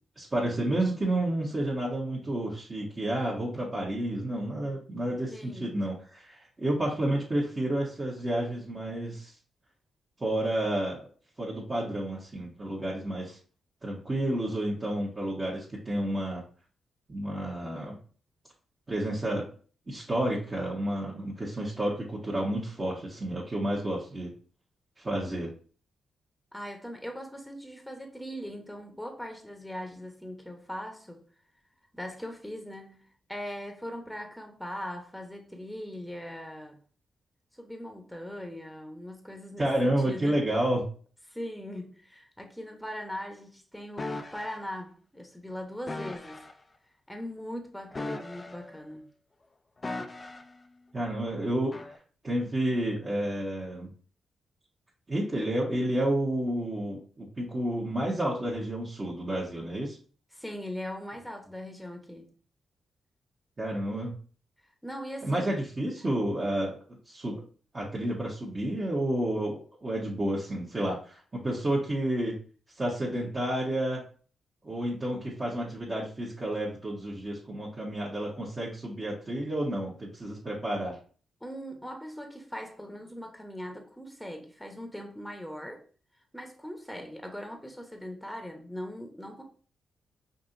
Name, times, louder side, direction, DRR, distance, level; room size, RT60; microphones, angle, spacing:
voice 1, 0.2-9.3 10.2-11.1 11.4-13.4 13.8-16.4 17.1-18.0 18.9-19.5 19.9-24.3 25.0-25.5 39.6-40.8 50.9-52.0 52.2-53.9 55.1-60.0 63.6-64.1 65.2-66.8 67.1-67.4 67.7-72.3 72.8-74.0 74.6-81.0, right 1 dB, 35° right, 1.3 m, -30 dB
voice 2, 5.3-5.8 26.5-31.2 31.9-36.8 37.5-40.4 41.3-46.4 47.1-49.0 60.3-62.3 64.8-65.6 81.4-85.8 86.3-89.4, equal, 5° left, 1.0 m, -40 dB
sound 1, 44.0-44.6 45.9-46.5 47.9-48.8 49.8-50.6 51.7-52.0, left 2 dB, 35° left, 0.5 m, -38 dB
5.2 x 2.7 x 2.6 m
hypercardioid pair, 40°, 0 cm